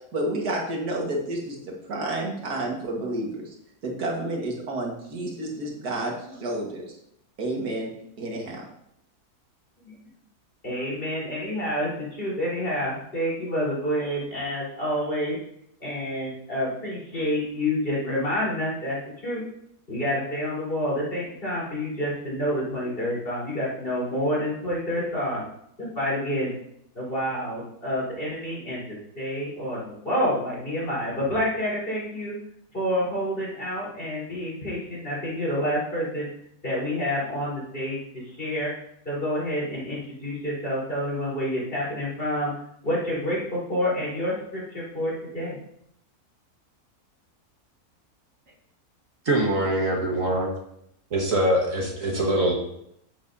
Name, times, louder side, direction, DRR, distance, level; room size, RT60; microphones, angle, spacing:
voice 1, 0.1-3.5 3.8-6.1 6.4-6.8 7.4-7.9 8.2-8.7, right 1 dB, 90° right, -1 dB, 2.3 m, -30 dB
voice 2, 10.6-15.4 15.8-19.0 19.2-19.4 19.9-25.4 25.8-26.5 26.9-32.4 32.7-36.3 36.6-38.7 39.0-42.5 42.8-45.6, equal, 35° left, -6 dB, 4.4 m, -28 dB
voice 3, 49.3-50.5 51.1-52.5, right 1 dB, 60° right, 0 dB, 1.9 m, -23 dB
10.5 x 8.8 x 2.8 m, 0.74 s
omnidirectional pair, 1.6 m